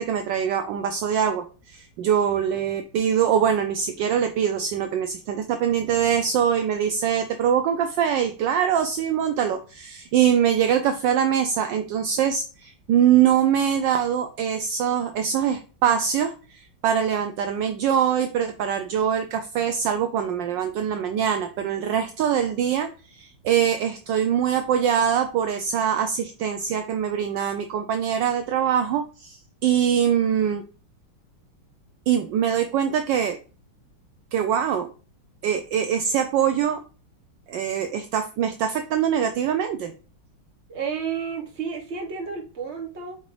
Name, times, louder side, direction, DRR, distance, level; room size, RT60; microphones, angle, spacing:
voice 1, 0.0-30.6 32.1-33.4 34.3-34.9 35.4-36.8 37.5-39.9, right 8 dB, 75° right, 7 dB, 1.1 m, -23 dB
voice 2, 40.7-43.2, right 6 dB, 35° right, 1 dB, 1.5 m, -31 dB
8.1 x 3.9 x 3.2 m, 0.36 s
omnidirectional pair, 2.3 m